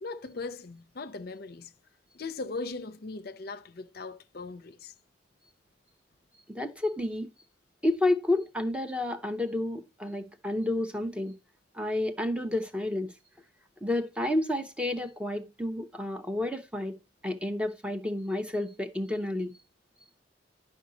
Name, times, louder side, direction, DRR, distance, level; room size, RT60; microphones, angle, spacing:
voice 1, 0.0-1.7 2.1-4.9, left 3 dB, 55° left, 0.6 m, -39 dB
voice 2, 6.5-7.3 7.8-11.4 11.7-13.1 13.8-17.0 17.2-19.5, left 1 dB, 5° right, 0.9 m, -30 dB
11.0 x 5.6 x 4.0 m
head